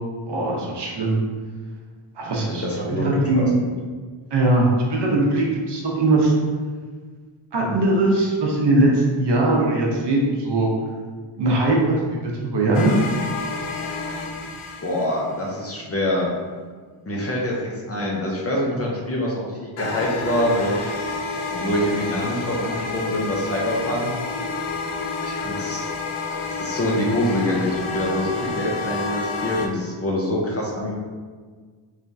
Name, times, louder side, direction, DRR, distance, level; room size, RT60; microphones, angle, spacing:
voice 1, 0.3-1.2 2.2-2.6 2.9-3.4 4.3-6.3 7.5-10.7 11.4-11.8 12.2-12.9, right 2 dB, 55° right, -2 dB, 0.8 m, -20 dB
voice 2, 2.5-3.5 14.8-16.3 17.1-20.9 21.5-24.1 25.2-25.9 26.4-30.9, left 1 dB, 30° left, -3 dB, 0.5 m, -25 dB
sound 1, 12.7-15.5 19.8-29.7, left 3 dB, 75° left, 0.6 m, -29 dB
3.4 x 3.2 x 2.6 m, 1.5 s
wide cardioid pair, 135°, 50 cm